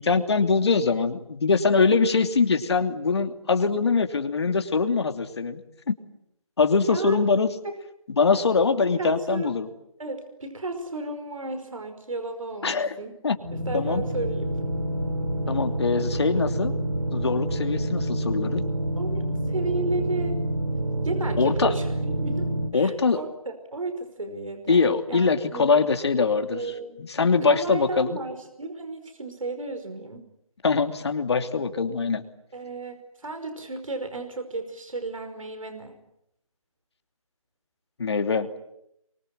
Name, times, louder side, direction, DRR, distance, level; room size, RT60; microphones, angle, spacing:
voice 1, 0.0-5.6 6.6-7.5 8.1-9.7 12.6-12.9 13.2-13.4 13.7-14.0 15.5-16.7 17.1-18.6 21.4-21.7 22.7-23.2 24.7-26.6 27.0-28.2 30.6-32.2 38.0-38.5, left 4 dB, 50° left, 7 dB, 2.9 m, -23 dB
voice 2, 6.9-7.3 7.6-7.7 8.3-8.4 9.0-9.6 10.0-13.1 13.5-14.6 15.5-15.6 16.2-16.3 19.0-20.4 21.0-23.3 23.7-24.8 25.1-25.8 26.5-27.1 27.4-30.3 32.5-36.0, right 2 dB, 70° right, 7 dB, 5.2 m, -33 dB
sound 1, 13.4-22.7, right 1 dB, 85° right, 3.7 m, -28 dB
26.5 x 24.0 x 9.2 m, 0.79 s
figure-of-eight pair, 160°, 18 cm